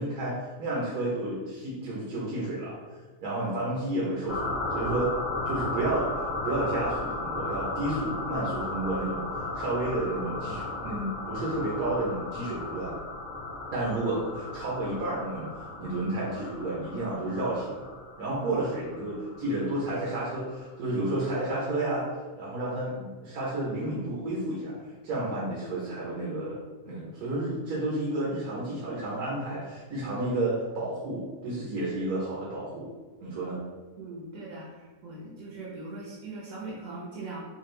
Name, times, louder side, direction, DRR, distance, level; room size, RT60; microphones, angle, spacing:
voice 1, 0.0-2.7 3.2-5.1 5.4-9.2 9.5-12.9 13.7-15.5 15.8-17.9 18.2-22.0 22.4-24.7 25.0-26.6 26.8-32.9 33.2-33.6, right 1 dB, 80° right, -6 dB, 1.4 m, -31 dB
sound 1, 4.3-20.5, left 2 dB, 5° right, 0.7 m, -35 dB
voice 2, 34.0-37.5, right 2 dB, 65° right, -5 dB, 1.1 m, -40 dB
4.2 x 2.3 x 3.2 m, 1.3 s
omnidirectional pair, 1.6 m